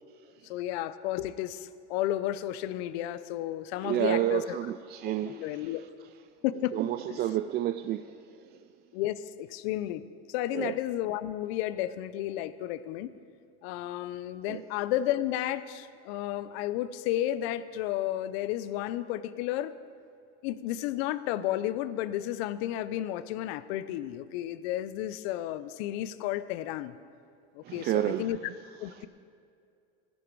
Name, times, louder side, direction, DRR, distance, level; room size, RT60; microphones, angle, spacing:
voice 1, 0.4-4.6 5.2-5.8 6.4-6.8 7.1-7.2 8.9-10.0 10.3-13.1 13.6-19.7 20.4-26.9 27.5-28.4 28.8-29.1, left 13 dB, 70° left, 15 dB, 0.7 m, -32 dB
voice 2, 3.8-5.7 6.7-8.1 10.5-10.7 14.5-14.6 27.6-28.2, right 12 dB, 30° right, 9 dB, 0.4 m, -30 dB
17.0 x 12.5 x 4.7 m, 2.4 s
supercardioid pair, 125°, 33 cm